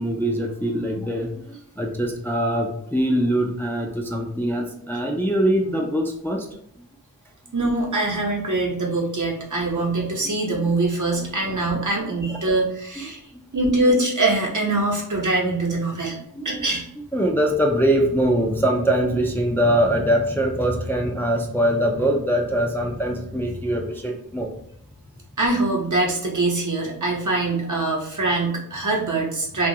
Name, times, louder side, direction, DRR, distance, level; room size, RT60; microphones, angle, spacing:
voice 1, 0.0-6.5 6.8-6.9 10.2-10.3 11.2-11.6 13.0-13.1 16.3-16.5 17.1-24.5, right 1 dB, 5° left, 1 dB, 0.4 m, -23 dB
voice 2, 7.5-13.2 13.5-16.2 16.4-16.8 25.4-29.7, right 2 dB, 55° right, -1 dB, 0.9 m, -23 dB
2.9 x 2.3 x 2.7 m, 0.70 s
wide cardioid pair, 55°, 35 cm